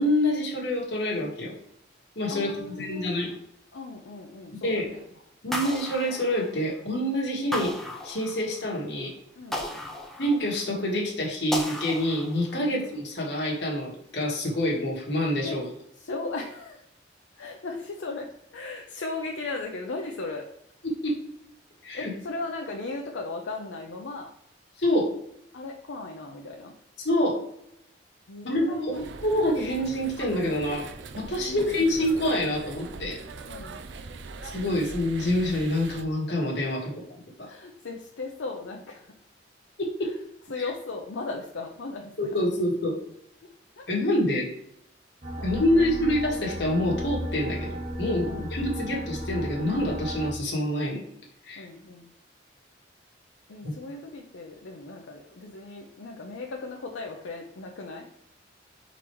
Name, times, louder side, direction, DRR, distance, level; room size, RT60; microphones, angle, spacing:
voice 1, 0.0-1.5 2.1-3.3 4.6-4.9 5.4-7.8 8.0-9.1 10.2-15.7 20.8-21.2 21.8-22.1 24.8-25.1 27.0-27.4 28.5-30.9 31.1-33.2 34.5-37.0 39.8-40.2 40.6-40.7 42.2-43.0 43.9-44.5 45.4-51.0 51.4-51.7 53.6-53.7, left 1 dB, 65° left, -3 dB, 1.4 m, -26 dB
voice 2, 2.3-3.4 3.7-5.0 9.4-9.7 12.6-12.8 15.4-15.6 16.0-16.8 17.3-20.5 21.9-24.3 25.5-26.7 28.3-29.1 31.4-32.0 33.5-33.8 36.7-36.9 37.4-39.1 40.5-42.4 43.4-43.9 45.4-45.8 48.2-48.8 51.6-52.1 53.5-58.1, left 3 dB, 90° left, 1 dB, 0.6 m, -37 dB
sound 1, 5.5-6.9 7.5-8.7 9.5-10.8 11.5-12.7, left 1 dB, ahead, 0.5 m, -35 dB
sound 2, 28.9-36.0, right 3 dB, 75° right, 0.4 m, -41 dB
sound 3, 45.2-50.3, equal, 50° right, 1.5 m, -34 dB
4.5 x 3.9 x 3.0 m, 0.76 s
head